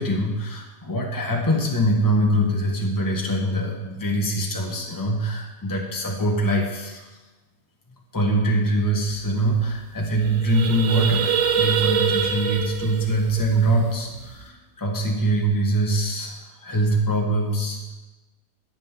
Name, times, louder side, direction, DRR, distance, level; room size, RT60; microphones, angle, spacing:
voice 1, 0.0-7.1 8.1-17.8, right 1 dB, 15° left, -1 dB, 1.5 m, -23 dB
sound 1, 9.2-9.3 9.5-9.7 10.1-14.4, right 7 dB, 70° right, 1.2 m, -25 dB
9.3 x 9.0 x 7.5 m, 1.2 s
omnidirectional pair, 1.4 m